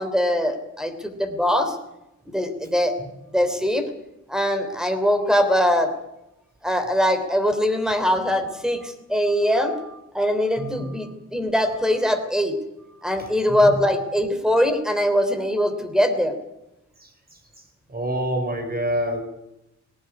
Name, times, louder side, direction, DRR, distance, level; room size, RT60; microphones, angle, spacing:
voice 1, 0.0-1.8 2.3-2.9 3.3-3.8 4.3-5.9 6.6-12.6 13.0-16.4, equal, ahead, 8 dB, 3.2 m, -22 dB
voice 2, 10.6-10.9 13.5-13.8 17.0-17.4 17.9-19.2, right 1 dB, 30° right, 6 dB, 5.3 m, -27 dB
19.5 x 18.0 x 9.7 m, 0.90 s
wide cardioid pair, 130°, 29 cm